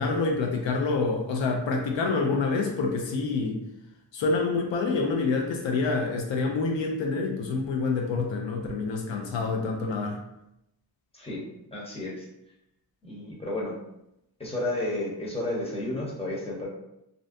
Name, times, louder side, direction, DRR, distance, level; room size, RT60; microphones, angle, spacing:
voice 1, 0.0-3.6 4.1-10.2, left 4 dB, 80° left, 2 dB, 0.5 m, -27 dB
voice 2, 11.7-12.3 13.0-13.7 14.4-16.7, left 1 dB, 15° left, -5 dB, 0.9 m, -32 dB
2.5 x 2.1 x 2.5 m, 0.84 s
cardioid pair, 60°, 44 cm